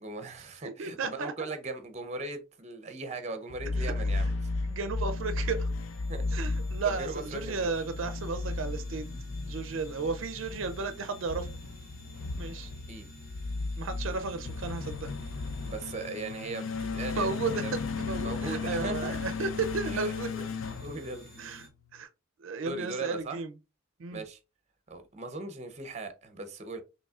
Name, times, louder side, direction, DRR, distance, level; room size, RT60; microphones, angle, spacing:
voice 1, 0.0-4.5 6.1-6.3 6.8-7.7 12.9-13.1 15.6-17.7 18.2-19.2 19.9-20.5 20.8-21.5 22.7-23.4 24.1-24.4 24.9-26.8, right 2 dB, 35° right, 0.7 m, -39 dB
voice 2, 0.6-1.3 3.8-3.9 4.7-5.7 6.3-9.1 9.5-11.5 12.4-12.7 13.8-15.1 17.2-20.3 21.4-21.6 21.9-22.1 22.4-23.5 24.0-24.2, right 4 dB, 70° right, 0.4 m, -34 dB
sound 1, 3.5-21.6, left 3 dB, 75° left, 0.4 m, -35 dB
sound 2, 4.2-21.7, equal, 45° left, 2.5 m, -51 dB
5.3 x 3.1 x 2.4 m
head